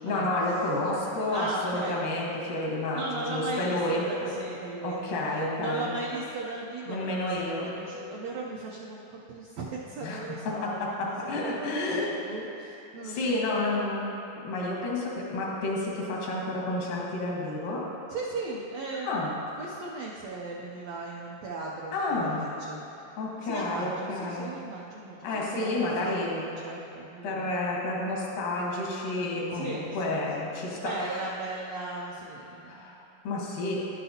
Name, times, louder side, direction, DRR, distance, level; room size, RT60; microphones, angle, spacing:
voice 1, 0.0-4.4 4.8-5.9 6.9-7.7 10.0-12.3 13.0-14.2 14.4-17.9 19.0-19.3 21.9-22.5 23.2-24.5 25.2-26.5 27.2-31.2 32.7-33.8, left 2 dB, 90° left, -3 dB, 3.1 m, -30 dB
voice 2, 1.3-2.1 2.9-13.4 18.1-19.3 19.6-23.1 23.4-27.5 29.5-30.2 30.8-32.9, right 3 dB, 80° right, -3 dB, 1.5 m, -37 dB
11.0 x 9.7 x 2.8 m, 2.8 s
omnidirectional pair, 3.8 m